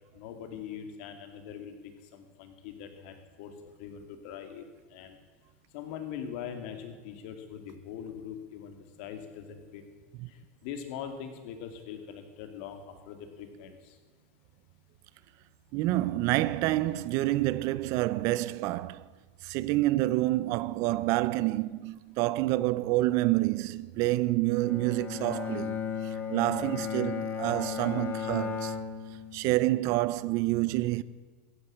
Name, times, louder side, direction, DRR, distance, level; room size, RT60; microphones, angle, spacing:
voice 1, 0.1-1.7 2.1-3.5 3.8-4.6 4.9-5.2 5.7-9.8 10.3-14.0, left 8 dB, 65° left, 2.6 m, -42 dB
voice 2, 15.7-19.1 19.4-28.7 29.3-31.0, right 17 dB, 50° right, 0.5 m, -28 dB
Bowed string instrument, 24.6-29.8, left 7 dB, 30° left, 1.9 m, -35 dB
15.0 x 10.5 x 8.6 m
supercardioid pair, 145°, 7 cm